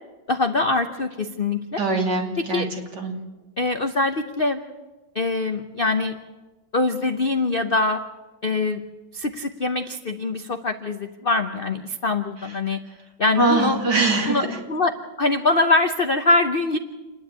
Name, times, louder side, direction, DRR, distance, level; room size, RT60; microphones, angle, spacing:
voice 1, 0.3-1.8 2.4-2.7 3.6-4.6 5.1-6.2 6.7-8.0 8.4-8.8 9.1-12.8 13.2-13.8 14.3-16.8, left 2 dB, 50° left, 7 dB, 0.7 m, -23 dB
voice 2, 1.8-2.6 3.0-3.1 13.4-14.4, right 3 dB, 60° right, 1 dB, 3.4 m, -22 dB
28.5 x 10.5 x 8.8 m, 1.2 s
omnidirectional pair, 2.1 m